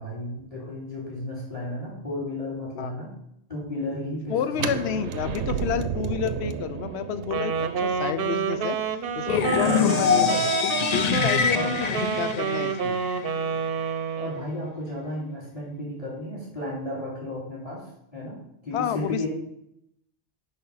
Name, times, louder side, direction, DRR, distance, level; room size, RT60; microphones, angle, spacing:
voice 1, 0.0-3.1 3.5-5.0 9.6-10.4 11.5-11.7 14.2-19.3, left 1 dB, 30° left, -5 dB, 3.0 m, -33 dB
voice 2, 4.3-8.8 9.2-13.0 18.7-19.3, left 9 dB, 75° left, 12 dB, 0.8 m, -30 dB
sound 1, 4.5-10.4, right 7 dB, 85° right, 0.9 m, -33 dB
Wind instrument woodwind instrument, 7.2-14.5, right 7 dB, 60° right, 0.8 m, -28 dB
sound 2, 9.3-13.2, left 6 dB, 45° left, 0.6 m, -24 dB
6.9 x 5.2 x 5.5 m, 0.77 s
omnidirectional pair, 1.1 m